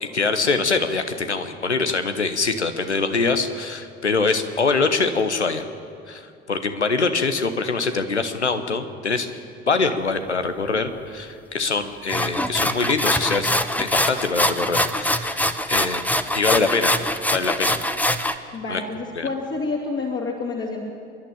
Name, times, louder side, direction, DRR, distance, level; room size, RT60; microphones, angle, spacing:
voice 1, 0.0-5.6 6.1-6.2 6.5-9.3 9.7-16.0 16.3-16.9 17.3-17.8 18.7-18.8 19.1-19.3, left 4 dB, 85° left, 9 dB, 1.1 m, -24 dB
sound 1, 12.1-18.3, left 1 dB, 5° left, 1.0 m, -23 dB
voice 2, 18.5-20.9, left 3 dB, 35° left, -3 dB, 3.2 m, -28 dB
27.5 x 11.5 x 8.9 m, 2.4 s
figure-of-eight pair, 60°, 33 cm